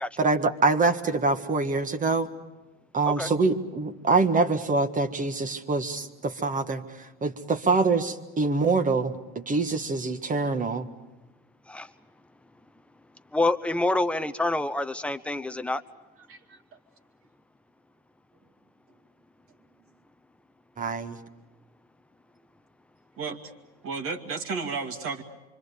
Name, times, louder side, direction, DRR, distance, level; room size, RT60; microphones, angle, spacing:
voice 1, 0.2-2.3 2.9-10.9 20.8-21.2, right 3 dB, 25° right, 7 dB, 1.6 m, -25 dB
voice 2, 13.3-15.8, left 2 dB, 5° left, 9 dB, 0.9 m, -26 dB
voice 3, 16.2-16.8 23.2-23.4 23.8-25.2, right 4 dB, 45° right, 5 dB, 2.5 m, -33 dB
26.0 x 25.0 x 6.9 m, 1.1 s
supercardioid pair, 105°, 30 cm